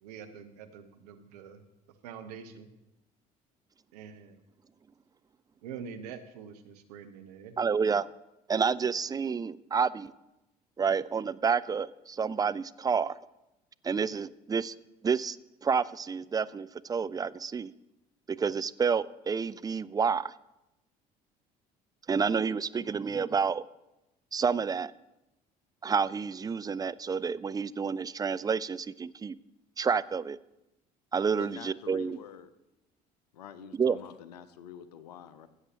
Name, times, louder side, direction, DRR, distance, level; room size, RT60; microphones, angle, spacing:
voice 1, 0.0-1.6 2.0-2.7 3.9-4.4 5.6-7.6, right 7 dB, 75° right, 8 dB, 1.0 m, -45 dB
voice 2, 7.6-8.1 8.5-10.1 10.8-13.1 13.8-14.7 15.0-15.4 15.6-17.7 18.4-20.3 22.1-23.6 24.3-24.9 25.8-29.4 29.8-30.4 31.1-32.2 33.8-34.0, right 6 dB, 20° right, 16 dB, 0.4 m, -29 dB
voice 3, 31.4-32.5 33.3-35.5, left 9 dB, 85° left, 13 dB, 0.7 m, -46 dB
16.5 x 8.1 x 2.9 m, 0.93 s
hypercardioid pair, 60°, 20 cm